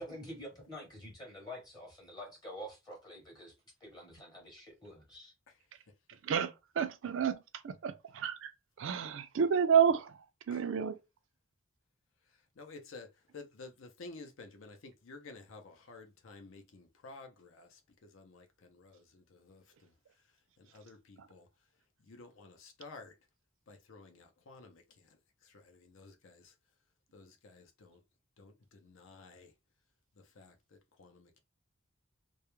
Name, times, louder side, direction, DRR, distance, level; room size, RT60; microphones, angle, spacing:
voice 1, 0.0-3.5 3.8-5.3, equal, 20° left, 0.7 m, -47 dB
voice 2, 6.2-7.4 7.6-8.5 8.8-10.2 10.5-11.0, right 7 dB, 65° right, 0.4 m, -30 dB
voice 3, 12.3-19.9 20.6-21.5 22.0-23.1 23.7-26.5 27.1-28.0 28.4-29.5 30.2-31.4, left 3 dB, 70° left, 0.5 m, -53 dB
2.3 x 2.1 x 2.9 m
head